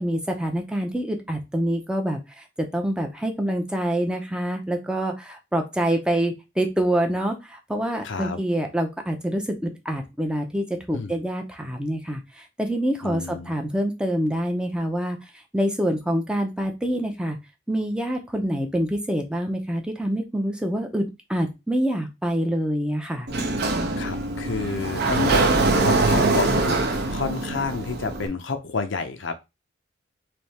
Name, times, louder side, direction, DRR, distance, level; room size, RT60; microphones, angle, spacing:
voice 1, 0.0-2.4 2.7-15.2 15.5-17.4 17.7-23.3, right 1 dB, 5° right, 3 dB, 0.5 m, -26 dB
voice 2, 8.0-8.4 10.9-11.1 13.0-13.5 24.0-29.4, left 4 dB, 65° left, 8 dB, 0.6 m, -30 dB
Sliding door, 23.3-28.3, right 2 dB, 55° right, 0.7 m, -23 dB
3.4 x 2.8 x 4.1 m, 0.24 s
head